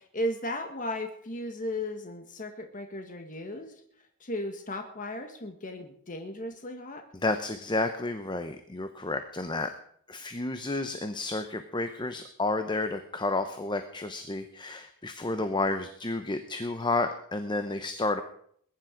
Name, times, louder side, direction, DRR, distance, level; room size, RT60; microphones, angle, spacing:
voice 1, 0.0-3.7 4.2-7.0, left 1 dB, 40° left, 5 dB, 1.6 m, -35 dB
voice 2, 7.2-9.7 10.1-18.2, left 2 dB, 20° left, 8 dB, 0.9 m, -31 dB
21.0 x 10.5 x 5.2 m, 0.64 s
head